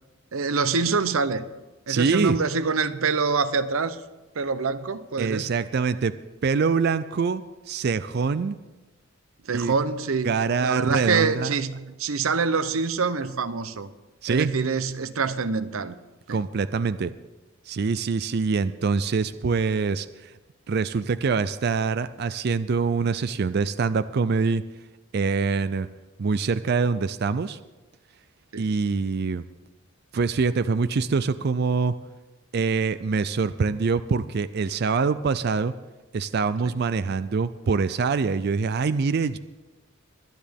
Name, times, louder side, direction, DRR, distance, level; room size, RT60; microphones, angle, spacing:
voice 1, 0.3-1.5 1.9-4.0 4.4-5.5 9.5-10.3 10.6-13.9 14.3-16.0 16.3-16.4 28.5-28.7, right 4 dB, 85° right, 0.7 m, -25 dB
voice 2, 1.9-2.4 5.2-6.1 6.4-7.4 7.7-8.6 9.5-9.7 10.2-11.5 14.2-14.5 16.3-17.1 17.7-20.3 20.7-24.6 25.1-25.9 26.2-27.6 28.6-29.4 30.1-32.0 32.5-35.7 36.1-39.4, right 5 dB, 50° right, 0.4 m, -24 dB
22.0 x 9.6 x 3.5 m
head